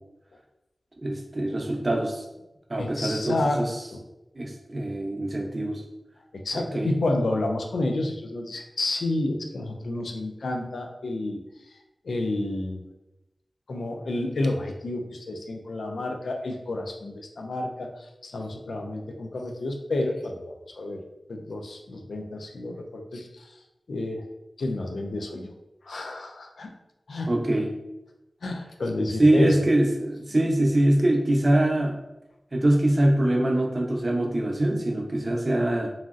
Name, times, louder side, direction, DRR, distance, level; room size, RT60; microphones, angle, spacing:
voice 1, 1.0-2.2 2.7-3.8 4.3-5.8 6.5-6.9 27.3-27.7 29.2-32.0 32.5-35.9, right 1 dB, 40° right, 0 dB, 0.6 m, -23 dB
voice 2, 2.8-4.0 6.3-11.4 12.0-12.8 13.7-17.9 18.2-21.0 21.3-23.5 23.9-24.2 24.6-25.5 25.8-26.7 27.1-27.3 28.4-29.7 30.3-30.5, left 2 dB, 85° left, 3 dB, 0.3 m, -30 dB
2.9 x 2.6 x 2.4 m, 0.96 s
cardioid pair, 45°, 0 cm